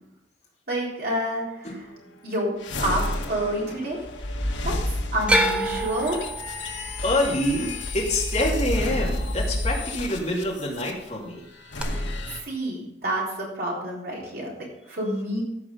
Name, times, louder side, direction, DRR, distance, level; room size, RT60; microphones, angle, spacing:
voice 1, 0.7-1.7 2.2-4.0 4.6-4.8 5.1-6.2 11.9-14.5 14.9-15.4, right 1 dB, 55° right, -4 dB, 3.9 m, -28 dB
voice 2, 1.6-2.2 7.0-11.5, left 1 dB, 40° left, -3 dB, 2.6 m, -27 dB
sound 1, 2.6-10.9 11.6-12.4, left 1 dB, 90° left, 1.4 m, -30 dB
sound 2, 5.3-9.5 9.8-10.5 11.8-11.9, right 1 dB, 5° right, 0.8 m, -28 dB
14.5 x 5.0 x 5.3 m, 0.81 s
head